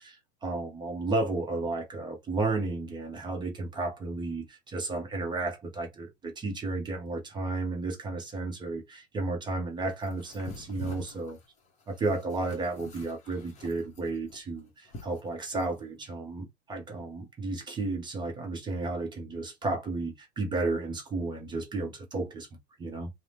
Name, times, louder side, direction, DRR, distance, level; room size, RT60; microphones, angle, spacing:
voice 1, 0.0-11.4 11.9-22.5 22.8-23.1, right 3 dB, 15° right, 0.6 m, -33 dB
sound 1, 10.0-15.8, left 2 dB, 20° left, 0.8 m, -47 dB
2.7 x 2.0 x 3.2 m
hypercardioid pair, 135°, 34 cm